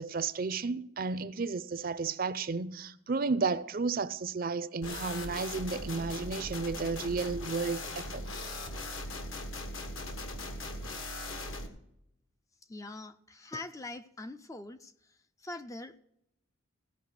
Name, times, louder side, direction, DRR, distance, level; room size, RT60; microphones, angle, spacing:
voice 1, 0.0-8.2, right 4 dB, 45° right, 0.5 m, -33 dB
sound 1, 4.8-11.7, left 2 dB, 70° left, 1.5 m, -39 dB
voice 2, 12.7-16.0, left 2 dB, 15° left, 0.4 m, -43 dB
16.5 x 5.5 x 6.5 m
head